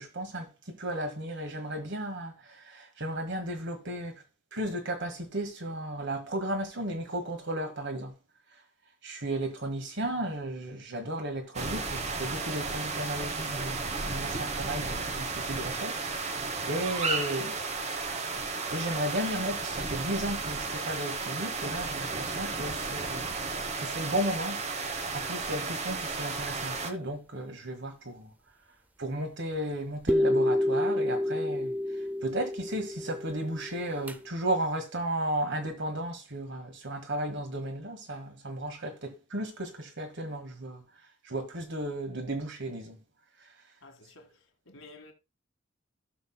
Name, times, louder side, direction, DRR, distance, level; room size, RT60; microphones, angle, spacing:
voice 1, 0.0-4.1 4.5-8.1 9.0-17.6 18.7-23.4 23.8-28.3 29.0-31.7 32.2-40.8 41.2-43.0, right 1 dB, 60° right, 1.7 m, -34 dB
sound 1, 11.5-26.9, right 4 dB, 35° right, 1.0 m, -33 dB
sound 2, 30.1-34.1, left 1 dB, 10° right, 0.4 m, -29 dB
voice 2, 43.8-44.3 44.7-45.1, left 2 dB, 75° left, 1.8 m, -51 dB
16.0 x 6.0 x 2.2 m
head